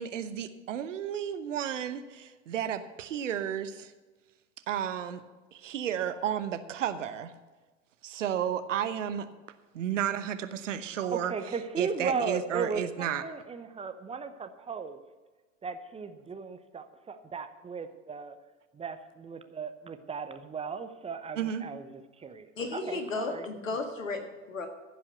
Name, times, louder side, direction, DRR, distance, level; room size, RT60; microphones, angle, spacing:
voice 1, 0.0-3.9 4.7-5.2 5.5-7.3 8.0-9.3 9.7-11.3 11.8-13.2 21.4-21.6, right 9 dB, 70° right, 11 dB, 0.9 m, -32 dB
voice 2, 11.0-15.0 15.6-18.4 18.7-23.5, right 5 dB, 15° right, 8 dB, 0.8 m, -36 dB
voice 3, 22.6-24.7, left 3 dB, 80° left, 5 dB, 1.8 m, -34 dB
15.0 x 5.6 x 7.9 m, 1.3 s
figure-of-eight pair, 80°, 39 cm